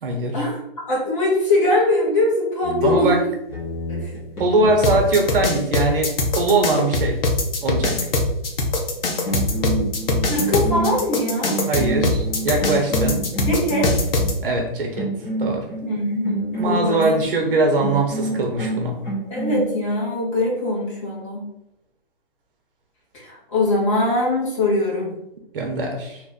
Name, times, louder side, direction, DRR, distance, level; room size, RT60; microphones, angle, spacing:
voice 1, 0.0-0.4 2.8-3.2 4.4-7.2 7.6-8.0 11.7-13.2 14.4-15.1 15.4-15.6 16.6-18.9 25.5-26.2, right 2 dB, 65° right, 2 dB, 1.1 m, -21 dB
voice 2, 0.9-3.3 3.9-4.2 10.3-11.6 13.5-13.9 15.8-17.1 17.5-17.9 19.3-21.5 23.1-25.1, left 1 dB, 30° left, -5 dB, 1.3 m, -22 dB
sound 1, 2.6-5.3 8.8-9.0 9.3-14.4 15.0-17.2 17.8-19.6, right 2 dB, 15° left, 0.7 m, -28 dB
sound 2, 4.8-14.3, left 2 dB, 70° left, 0.9 m, -22 dB
3.1 x 2.5 x 4.0 m, 0.84 s
hypercardioid pair, 170°, 30 cm